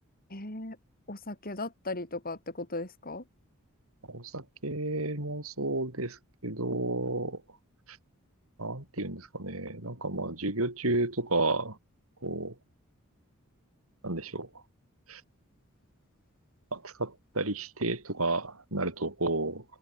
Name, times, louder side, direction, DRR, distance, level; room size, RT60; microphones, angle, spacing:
voice 1, 0.3-0.8 1.1-3.2, left 2 dB, 45° left, 7.7 m, -37 dB
voice 2, 4.1-7.4 7.9-8.0 8.6-11.8 12.2-12.6 14.0-14.5 15.1-15.2 16.7-19.6, right 2 dB, 75° right, 5.5 m, -32 dB
head